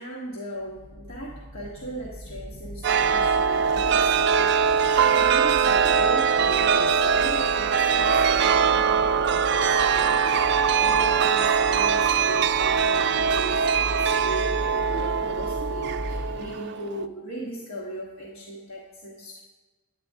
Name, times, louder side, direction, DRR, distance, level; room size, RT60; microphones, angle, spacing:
voice 1, 0.0-19.4, right 1 dB, 70° left, -4 dB, 1.4 m, -37 dB
sound 1, 0.6-16.5, equal, 55° left, 0.7 m, -39 dB
Chime, 2.8-17.1, right 6 dB, 55° right, 0.4 m, -22 dB
9.8 x 9.5 x 3.6 m, 1.3 s
head